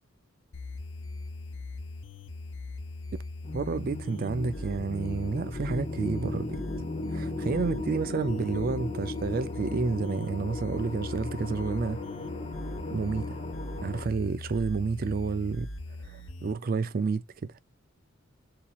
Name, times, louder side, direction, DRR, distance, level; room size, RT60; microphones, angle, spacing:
sound 1, 0.5-16.5, left 2 dB, 65° left, 0.7 m, -40 dB
sound 2, 3.4-14.0, left 2 dB, 30° left, 0.8 m, -37 dB
voice 1, 3.5-6.6 7.1-12.0 12.9-13.4 13.8-15.7 16.0-17.2, right 4 dB, 45° right, 0.4 m, -30 dB
7.0 x 2.8 x 2.3 m
head